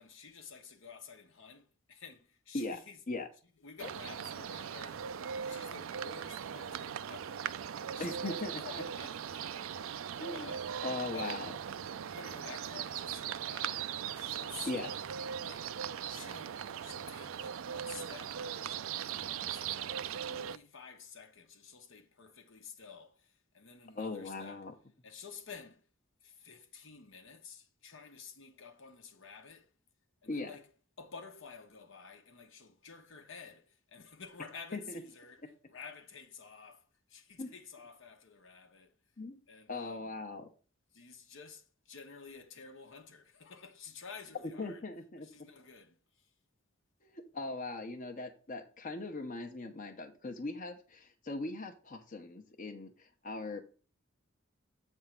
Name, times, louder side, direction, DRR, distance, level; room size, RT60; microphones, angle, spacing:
voice 1, 0.0-3.0 3.6-5.0 5.5-7.6 7.9-9.8 10.3-10.7 11.1-11.4 11.9-15.0 15.4-15.7 16.1-24.7 25.0-25.8 26.2-29.7 30.2-30.7 31.0-38.9 39.5-40.1 40.9-44.8 45.2-46.0, left 5 dB, 65° left, 1.1 m, -51 dB
sound 1, 3.8-20.6, right 8 dB, 70° right, 0.4 m, -39 dB
voice 2, 8.0-8.6 10.2-11.5 14.7-14.9 23.9-24.7 30.3-30.6 34.7-35.0 37.4-37.5 39.2-39.4 39.7-40.5 44.6-45.3 47.0-53.6, left 2 dB, 40° left, 0.9 m, -40 dB
7.8 x 3.6 x 5.8 m
head